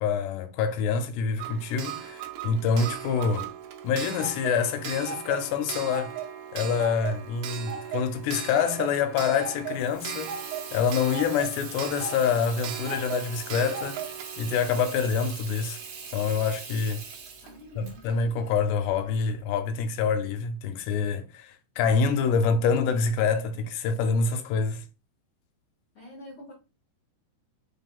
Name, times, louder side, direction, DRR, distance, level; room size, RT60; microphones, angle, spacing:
voice 1, 0.0-3.5 3.8-6.1 6.5-10.4 10.7-14.0 14.4-15.8 16.1-17.0 17.8-24.9, left 6 dB, 85° left, 2.7 m, -26 dB
Clock, 1.4-16.0 17.1-17.2 17.5-17.6, right 8 dB, 90° right, 2.1 m, -37 dB
Water tap faucet / Sink (filling or washing), 9.7-19.3, right 6 dB, 65° right, 2.0 m, -42 dB
voice 2, 17.4-18.1 25.9-26.5, left 2 dB, 60° left, 1.4 m, -45 dB
6.0 x 3.6 x 2.3 m
omnidirectional pair, 4.8 m